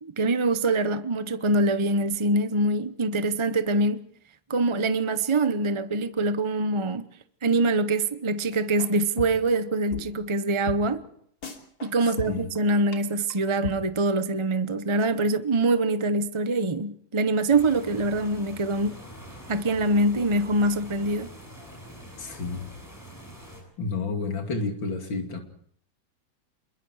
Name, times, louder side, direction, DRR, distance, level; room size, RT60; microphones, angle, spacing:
voice 1, 0.0-4.0 4.5-7.1 7.4-11.0 11.8-19.0 19.5-21.3, right 2 dB, 30° right, 0.5 m, -24 dB
sound 1, 8.5-8.9 9.2-9.6 9.9-10.0 10.3-10.4 10.7-10.8 11.0-11.1 11.4-11.9 12.2-12.6 12.9-13.0 13.3-13.4 13.6-13.8, left 2 dB, 55° left, 3.4 m, -34 dB
voice 2, 12.0-12.5 22.2-22.7 23.8-25.4, left 4 dB, 80° left, 3.5 m, -31 dB
sound 2, 17.5-23.6, equal, 10° left, 7.3 m, -45 dB
28.0 x 22.5 x 4.8 m
omnidirectional pair, 2.0 m